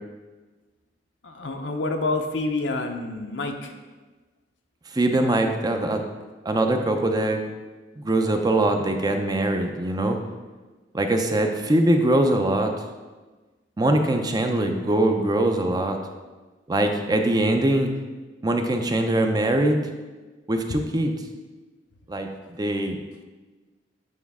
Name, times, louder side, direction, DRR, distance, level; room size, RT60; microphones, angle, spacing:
voice 1, 1.2-3.7 20.7-20.8, left 2 dB, 85° left, 4 dB, 0.7 m, -28 dB
voice 2, 4.9-6.0 6.5-7.4 8.0-10.2 10.9-12.7 13.8-16.0 16.7-17.9 18.4-19.9 20.5-21.1 22.1-22.3 22.6-23.0, right 1 dB, 20° right, 5 dB, 0.5 m, -22 dB
8.4 x 4.0 x 3.6 m, 1.3 s
head